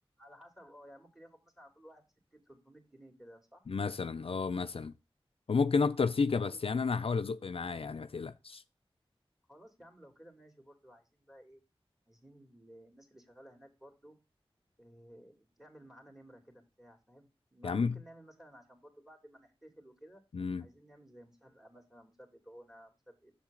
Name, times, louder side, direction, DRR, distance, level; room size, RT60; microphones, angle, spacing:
voice 1, 0.2-2.0 2.3-3.7 6.4-6.8 9.5-11.6 12.1-14.2 14.8-20.2 20.6-23.3, equal, 5° right, 2.6 m, -56 dB
voice 2, 3.7-4.9 5.5-8.6 17.6-18.0 20.3-20.6, left 4 dB, 70° left, 0.4 m, -31 dB
7.2 x 7.2 x 3.8 m
wide cardioid pair, 70°, 10 cm